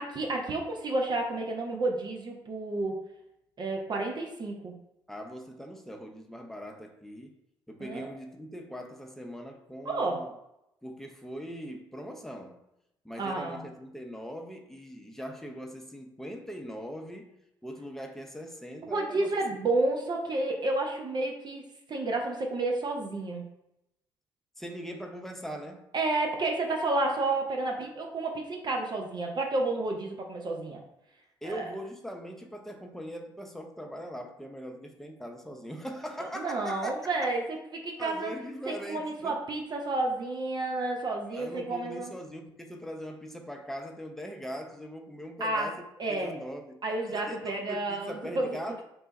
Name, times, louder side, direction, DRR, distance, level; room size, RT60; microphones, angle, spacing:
voice 1, 0.0-3.0 3.6-4.7 7.8-8.1 9.8-10.3 13.2-13.6 18.9-23.4 25.9-30.8 31.4-31.6 36.4-38.3 38.7-42.1 45.4-45.7 46.0-46.3 46.8-48.6, right 2 dB, 40° right, 0.7 m, -31 dB
voice 2, 5.1-7.4 7.7-10.3 10.8-12.6 13.0-17.3 17.6-19.6 24.6-25.9 31.4-37.0 38.0-39.4 41.3-45.8 46.1-46.8 47.1-48.8, equal, 5° left, 0.6 m, -41 dB
3.3 x 2.3 x 4.0 m
hypercardioid pair, 50°, 11 cm